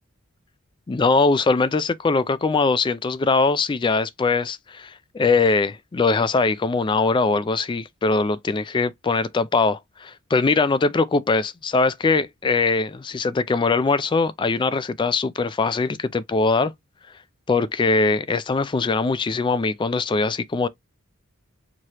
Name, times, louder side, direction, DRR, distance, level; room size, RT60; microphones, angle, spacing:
voice 1, 0.9-16.7 17.5-20.7, left 4 dB, 20° left, 0.3 m, -21 dB
4.8 x 2.9 x 2.9 m
head